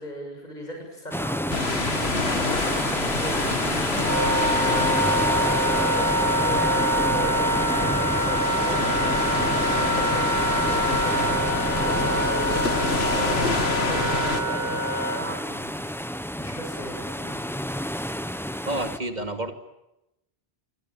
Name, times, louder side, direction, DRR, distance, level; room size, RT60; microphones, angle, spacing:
voice 1, 0.0-5.0 5.2-9.1 9.5-15.8 16.4-17.5, equal, 45° left, 1 dB, 7.3 m, -38 dB
sound 1, 1.1-19.0, equal, ahead, 1.0 m, -29 dB
sound 2, 1.5-14.4, left 3 dB, 85° left, 2.5 m, -29 dB
Wind instrument woodwind instrument, 4.0-15.2, equal, 15° right, 3.6 m, -25 dB
voice 2, 18.6-19.5, right 1 dB, 45° right, 7 dB, 2.7 m, -29 dB
27.0 x 24.0 x 8.9 m, 0.88 s
omnidirectional pair, 1.0 m